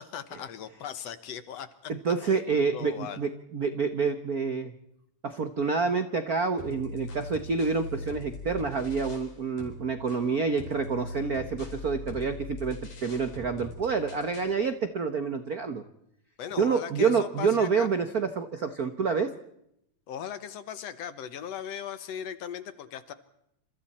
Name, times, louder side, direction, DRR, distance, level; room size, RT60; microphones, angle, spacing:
voice 1, 0.0-1.9 2.2-2.4 2.7-3.2 16.4-17.9 20.1-23.1, left 8 dB, 65° left, 12 dB, 2.0 m, -38 dB
voice 2, 1.9-4.7 5.2-15.8 16.6-19.3, right 5 dB, 80° right, 9 dB, 0.8 m, -28 dB
sound 1, 6.6-9.3 9.6-14.6, left 2 dB, 80° left, 6.3 m, -41 dB
27.5 x 27.0 x 4.3 m, 0.77 s
omnidirectional pair, 3.5 m